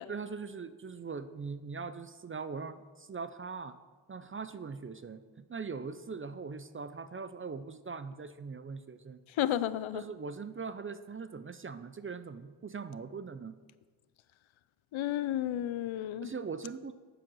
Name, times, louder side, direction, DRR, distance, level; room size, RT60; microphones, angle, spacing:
voice 1, 0.1-3.8 4.1-9.2 9.9-13.6 16.2-16.9, right 5 dB, 30° right, 12 dB, 0.4 m, -41 dB
voice 2, 9.4-10.0 14.9-16.3, left 12 dB, 80° left, 16 dB, 0.6 m, -32 dB
9.1 x 7.6 x 6.2 m, 1.4 s
wide cardioid pair, 105°, 47 cm